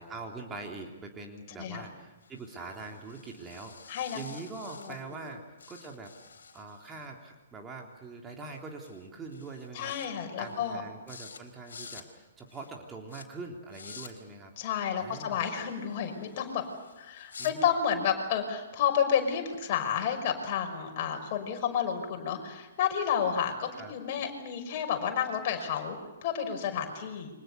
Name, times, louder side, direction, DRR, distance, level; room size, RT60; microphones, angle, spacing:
voice 1, 0.0-6.1 6.5-14.5 15.0-15.4 17.4-17.7 23.8-23.9, right 3 dB, 15° right, 1 dB, 3.3 m, -43 dB
sound 1, 2.2-5.3 5.6-7.1 8.4-8.6 8.8-9.1 9.3-10.1 10.4-10.8 11.1-11.4 11.6-12.1 12.5-12.7 13.1-13.2 13.7-14.1 15.3-17.5, left 5 dB, 60° left, 4.2 m, -50 dB
voice 2, 3.9-4.2 4.8-5.2 9.7-10.8 14.6-16.6 17.0-27.3, left 8 dB, 40° left, 5 dB, 5.7 m, -31 dB
29.5 x 25.0 x 6.9 m, 1.1 s
figure-of-eight pair, 120°, 0 cm